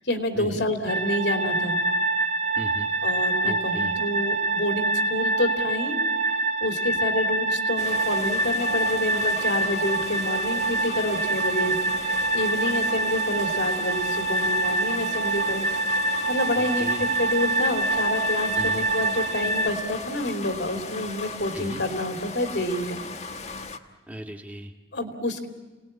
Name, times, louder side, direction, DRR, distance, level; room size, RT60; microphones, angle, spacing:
voice 1, 0.0-1.8 3.0-6.0 6.6-16.0 16.3-16.9 17.2-23.0 24.9-25.5, left 1 dB, 90° left, 4 dB, 2.7 m, -28 dB
sound 1, 0.9-19.7, right 2 dB, 40° right, 0.9 m, -25 dB
voice 2, 2.6-2.9 3.4-3.9 16.5-17.1 18.5-18.8 21.5-21.8 24.1-24.7, right 1 dB, 10° right, 3 dB, 1.7 m, -37 dB
sound 2, 7.8-23.8, left 4 dB, 40° left, 1.2 m, -37 dB
30.0 x 19.0 x 8.8 m, 1.3 s
head